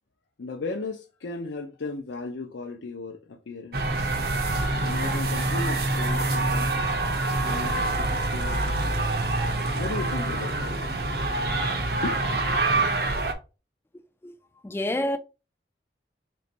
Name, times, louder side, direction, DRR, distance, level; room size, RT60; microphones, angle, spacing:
voice 1, 0.4-3.8 4.8-7.0 7.4-8.9 9.7-10.7 12.0-12.9, left 3 dB, 75° left, 0.5 m, -36 dB
sound 1, 3.7-13.3, right 2 dB, 55° right, 0.7 m, -26 dB
voice 2, 14.6-15.2, left 1 dB, 10° left, 0.3 m, -27 dB
3.3 x 3.1 x 4.0 m
head